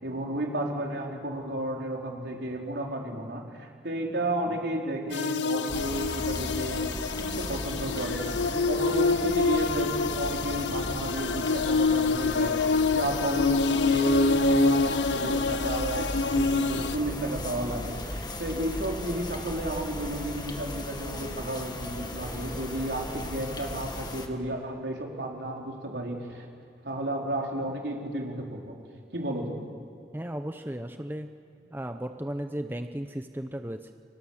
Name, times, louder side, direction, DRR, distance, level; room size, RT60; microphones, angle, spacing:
voice 1, 0.0-26.5 26.8-28.7 29.1-29.7, right 1 dB, 75° right, 0 dB, 4.3 m, -32 dB
sound 1, 5.1-17.0, left 3 dB, 90° left, 0.6 m, -26 dB
sound 2, 5.1-23.2, right 1 dB, 40° right, 5.7 m, -51 dB
sound 3, 5.7-24.3, left 1 dB, 25° left, 1.8 m, -37 dB
voice 2, 30.1-31.3 31.7-33.9, right 1 dB, 10° right, 7 dB, 0.8 m, -35 dB
29.5 x 25.0 x 7.3 m, 2.4 s
head